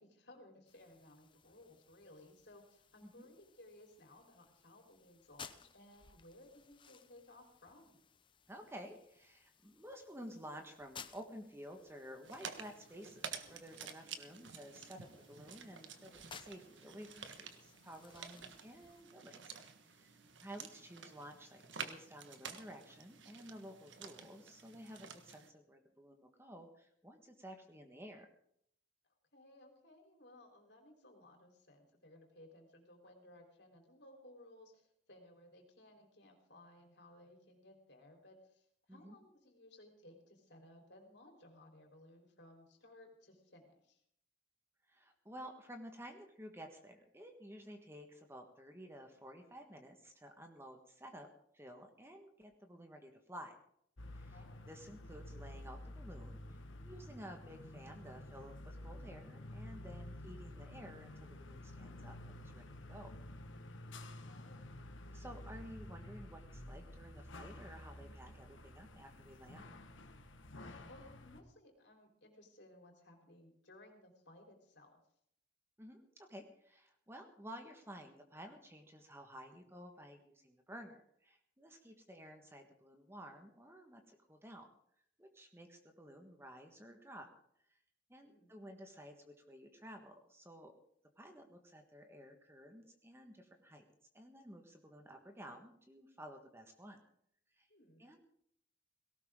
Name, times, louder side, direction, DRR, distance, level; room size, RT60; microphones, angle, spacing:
voice 1, 0.0-8.0 18.3-18.6 29.3-44.0 54.3-54.6 64.2-64.6 70.5-75.0 88.2-88.6 97.7-98.0, left 1 dB, 60° left, 3 dB, 4.0 m, -60 dB
sound 1, 0.7-19.0, left 6 dB, 25° left, 0.7 m, -60 dB
voice 2, 8.5-19.5 19.8-28.3 38.9-39.2 44.9-51.3 51.5-53.6 54.1-54.4 54.7-56.4 56.8-63.1 65.1-69.7 75.8-84.7 85.2-87.3 87.7-87.8 88.1-90.7 91.2-93.8 94.1-97.0 97.5-97.7 98.0-98.2, equal, 15° right, 4 dB, 1.5 m, -53 dB
sound 2, 12.2-25.5, right 6 dB, 70° right, 1.6 m, -51 dB
sound 3, 54.0-71.4, left 1 dB, 75° left, 1.5 m, -51 dB
18.5 x 17.5 x 3.8 m, 0.70 s
head